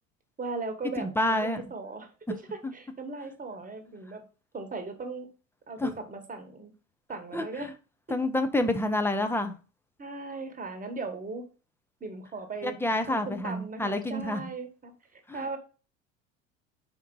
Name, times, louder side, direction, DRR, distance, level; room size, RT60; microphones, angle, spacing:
voice 1, 0.4-4.2 4.5-5.3 5.7-6.7 7.1-7.7 10.0-11.4 12.0-12.8 13.1-15.6, right 3 dB, 20° right, 1.4 m, -38 dB
voice 2, 1.0-1.6 2.6-2.7 5.8-5.9 7.3-7.7 8.1-9.6 12.6-14.4 15.3-15.4, left 1 dB, 5° left, 0.8 m, -28 dB
5.1 x 4.6 x 4.7 m
hypercardioid pair, 75°, 39 cm